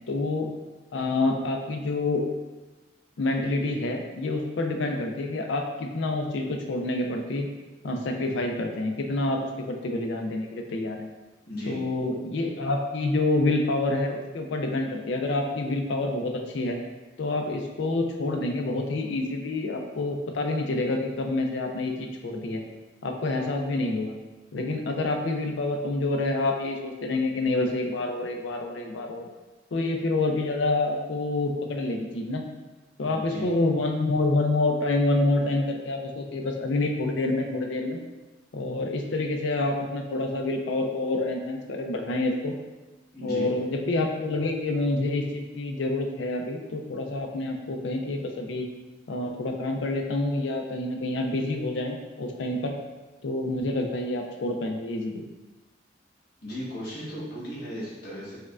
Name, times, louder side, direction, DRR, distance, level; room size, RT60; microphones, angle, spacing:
voice 1, 0.1-0.5 0.9-2.3 3.2-7.5 7.8-11.1 11.7-16.8 17.2-22.6 23.0-24.2 24.5-29.3 29.7-32.4 33.0-38.0 38.5-42.5 43.2-48.7 49.1-52.7 53.2-55.2, left 2 dB, 85° left, 3 dB, 0.4 m, -27 dB
voice 2, 11.5-11.8 33.0-33.5 43.1-43.5 56.4-58.4, equal, 60° left, -8 dB, 1.3 m, -36 dB
4.5 x 2.2 x 2.3 m, 1.2 s
head